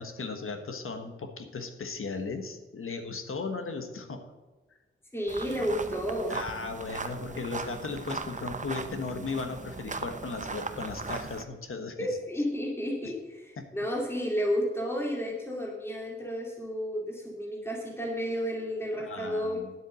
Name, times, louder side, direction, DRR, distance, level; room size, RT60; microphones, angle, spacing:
voice 1, 0.0-4.3 6.3-12.0 13.6-13.7 19.0-19.7, left 4 dB, 80° left, 6 dB, 1.5 m, -36 dB
voice 2, 5.1-6.4 12.0-19.6, equal, 10° left, -2 dB, 2.4 m, -32 dB
sound 1, 5.3-11.4, right 4 dB, 35° right, 0.8 m, -38 dB
10.0 x 8.0 x 6.4 m, 1.2 s
wide cardioid pair, 90°, 21 cm